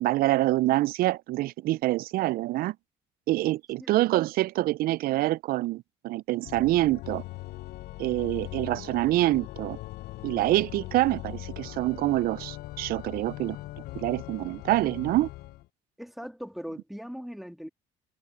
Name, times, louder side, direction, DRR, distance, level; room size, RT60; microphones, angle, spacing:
voice 1, 0.0-2.7 3.3-7.2 8.0-9.8 10.2-13.6 13.9-15.3, right 17 dB, 60° right, 0.5 m, -26 dB
Organ, 6.4-15.7, left 17 dB, 65° left, 0.9 m, -40 dB
voice 2, 16.0-17.7, equal, ahead, 3.2 m, -39 dB
hypercardioid pair, 60°, 17 cm